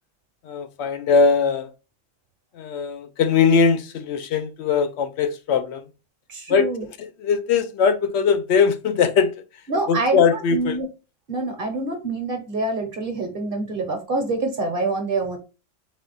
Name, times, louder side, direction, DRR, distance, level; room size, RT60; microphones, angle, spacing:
voice 1, 0.4-1.7 2.5-5.8 6.5-6.7 7.0-9.3 9.9-10.8, left 5 dB, 65° left, 0.8 m, -20 dB
voice 2, 6.3-6.8 9.7-10.2 10.5-10.9 11.3-15.4, right 2 dB, 50° right, 1.0 m, -26 dB
4.1 x 2.3 x 3.8 m
omnidirectional pair, 1.3 m